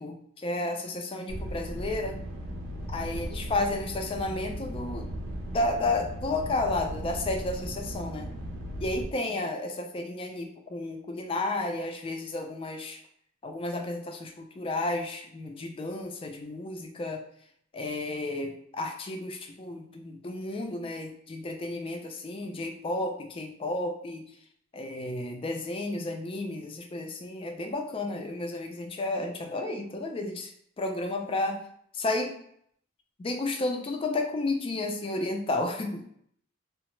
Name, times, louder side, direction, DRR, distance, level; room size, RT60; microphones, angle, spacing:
voice 1, 0.0-2.2 2.9-5.1 5.5-8.3 8.8-13.0 13.4-17.2 17.7-24.2 24.7-30.5 30.8-31.6 31.9-32.4 33.2-36.0, left 2 dB, 25° left, 4 dB, 0.3 m, -32 dB
sound 1, 1.3-9.0, equal, 80° right, 0.5 m, -37 dB
2.8 x 2.0 x 3.0 m, 0.69 s
head